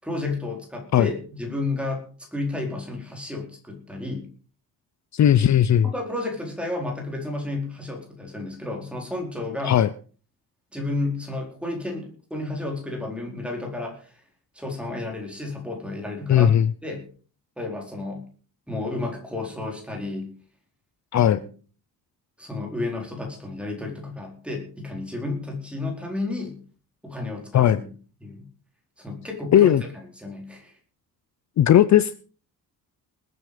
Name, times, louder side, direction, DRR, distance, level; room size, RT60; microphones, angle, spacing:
voice 1, 0.0-2.0 2.3-4.3 5.8-9.8 10.7-14.2 14.5-16.6 16.8-17.1 17.6-18.2 18.7-20.3 21.1-21.5 22.4-26.6 27.0-27.9 28.2-28.5 29.0-29.9 30.2-30.7, left 2 dB, 5° right, 1 dB, 4.4 m, -32 dB
voice 2, 5.1-5.9 9.6-9.9 16.3-16.7 21.1-21.4 27.5-27.8 29.5-29.8 31.6-32.1, left 10 dB, 50° left, 15 dB, 0.7 m, -17 dB
20.0 x 9.6 x 5.1 m, 0.40 s
wide cardioid pair, 170°, 36 cm